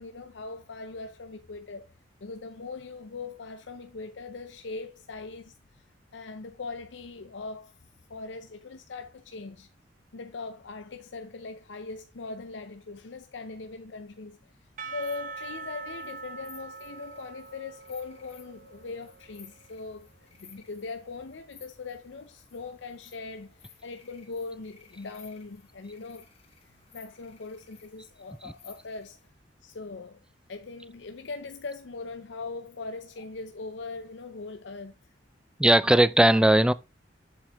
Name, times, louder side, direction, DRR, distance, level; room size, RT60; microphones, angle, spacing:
voice 1, 0.0-1.9 2.2-7.7 8.1-9.7 10.1-26.3 26.7-29.2 29.6-30.2 30.5-35.0, left 3 dB, 70° left, 0.6 m, -40 dB
Percussion / Church bell, 14.8-20.0, right 4 dB, 45° right, 0.7 m, -43 dB
sound 1, 15.0-29.3, left 6 dB, 35° left, 2.2 m, -57 dB
voice 2, 35.6-36.7, right 1 dB, 5° right, 0.3 m, -19 dB
7.8 x 7.0 x 3.0 m
head